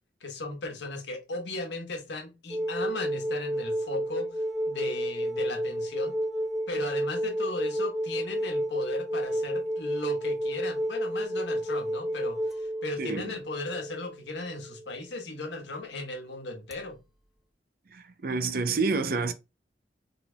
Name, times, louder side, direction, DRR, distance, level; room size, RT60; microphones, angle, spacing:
voice 1, 0.2-6.1 6.7-17.0, left 3 dB, 85° left, 1.1 m, -37 dB
sound 1, 2.5-14.9 16.7-16.8, equal, ahead, 0.4 m, -31 dB
voice 2, 13.0-13.3 18.2-19.3, right 4 dB, 55° right, 0.6 m, -27 dB
3.9 x 3.8 x 2.2 m
head